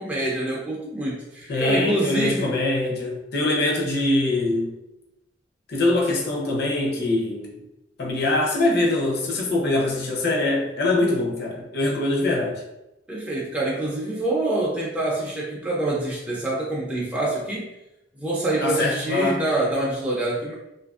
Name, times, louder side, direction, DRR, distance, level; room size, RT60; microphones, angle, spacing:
voice 1, 0.0-2.5 13.1-17.7 18.2-20.5, right 2 dB, 5° right, -6 dB, 0.4 m, -26 dB
voice 2, 1.5-4.7 5.7-7.5 8.0-12.6 18.6-19.4, left 2 dB, 55° left, -1 dB, 0.7 m, -23 dB
2.7 x 2.5 x 2.3 m, 0.91 s
head